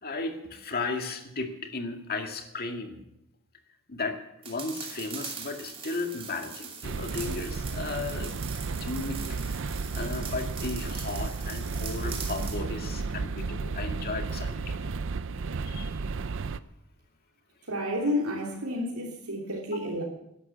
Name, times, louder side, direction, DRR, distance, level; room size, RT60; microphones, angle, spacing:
voice 1, 0.0-3.0 3.9-4.2 4.5-8.3 8.7-9.2 9.5-9.6 9.9-14.7 15.6-15.9, left 3 dB, 45° left, 4 dB, 2.1 m, -35 dB
sound 1, 4.4-12.6, right 6 dB, 25° right, 2.5 m, -42 dB
sound 2, 6.8-16.6, right 4 dB, 60° right, 0.6 m, -33 dB
voice 2, 17.7-20.0, left 1 dB, 80° right, -3 dB, 3.2 m, -30 dB
13.0 x 11.5 x 8.4 m, 0.82 s
head